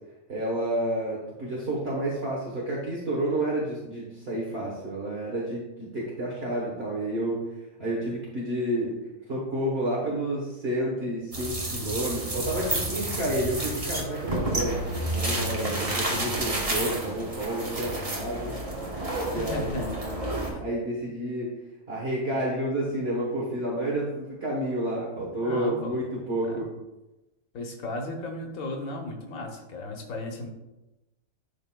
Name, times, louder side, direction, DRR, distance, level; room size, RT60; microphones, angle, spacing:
voice 1, 0.3-8.9 9.3-14.8 15.1-18.6 19.2-21.5 21.9-26.7, right 1 dB, 50° right, -4 dB, 1.3 m, -30 dB
sound 1, 11.3-20.5, right 1 dB, 30° right, 1.1 m, -30 dB
voice 2, 19.3-20.1 20.5-20.6 25.4-26.0 26.5-26.6 27.5-30.5, left 1 dB, 85° left, 2 dB, 1.3 m, -35 dB
11.0 x 3.8 x 2.2 m, 0.99 s
omnidirectional pair, 1.4 m